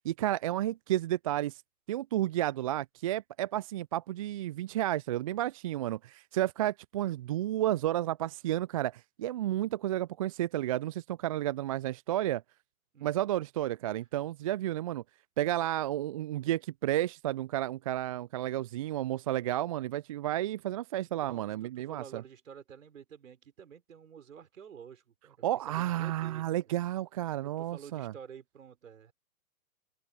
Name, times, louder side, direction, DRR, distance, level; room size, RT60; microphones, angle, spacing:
voice 1, 0.0-1.6 1.9-12.4 13.0-15.0 15.4-22.2 25.4-28.1, right 13 dB, 25° right, 0.5 m, -32 dB
voice 2, 12.9-13.3 21.0-26.5 27.4-29.1, right 7 dB, 60° right, 5.5 m, -50 dB
open air
figure-of-eight pair, 115°, 43 cm